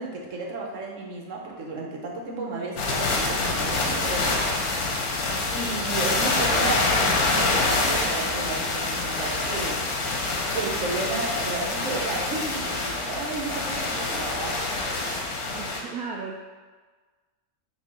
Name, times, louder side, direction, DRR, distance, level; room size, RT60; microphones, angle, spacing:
voice 1, 0.0-4.4 5.5-9.8 10.5-14.9, right 3 dB, 60° right, -1 dB, 1.3 m, -33 dB
sound 1, 2.8-15.8, left 2 dB, 80° left, 1.3 m, -26 dB
voice 2, 15.5-16.4, right 5 dB, 80° right, -1 dB, 1.0 m, -35 dB
6.1 x 3.0 x 5.3 m, 1.4 s
omnidirectional pair, 1.5 m